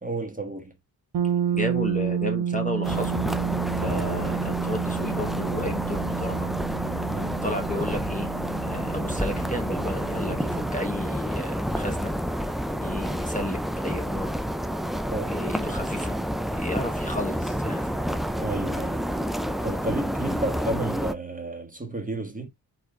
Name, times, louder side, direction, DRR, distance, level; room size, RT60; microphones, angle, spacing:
voice 1, 0.0-0.7 3.8-4.2 7.1-7.4 15.1-15.4 18.4-19.0 19.6-22.5, right 2 dB, 20° right, 1.4 m, -32 dB
sound 1, 1.1-10.9, right 8 dB, 75° right, 0.8 m, -30 dB
voice 2, 1.5-3.2 3.8-6.5 7.4-8.3 8.6-12.1 12.4-12.5 12.8-14.4 15.3-16.2 16.5-17.9, left 1 dB, 20° left, 1.2 m, -32 dB
sound 2, 2.8-21.1, equal, ahead, 0.3 m, -29 dB
4.4 x 4.2 x 2.4 m
cardioid pair, 80°, 40 cm